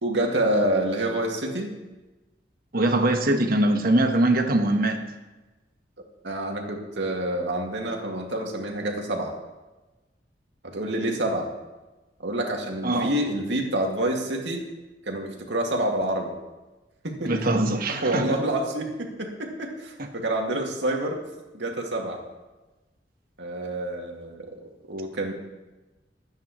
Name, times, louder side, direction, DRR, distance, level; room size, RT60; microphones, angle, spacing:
voice 1, 0.0-1.7 6.2-9.3 10.7-11.5 12.2-14.7 15.1-16.3 17.0-17.3 17.9-21.2 21.5-22.2 23.4-25.3, right 1 dB, 85° right, 1 dB, 2.2 m, -27 dB
voice 2, 2.7-5.0 12.8-13.1 17.2-18.4, right 1 dB, 55° right, 5 dB, 1.3 m, -22 dB
23.0 x 9.5 x 3.1 m, 1.1 s
head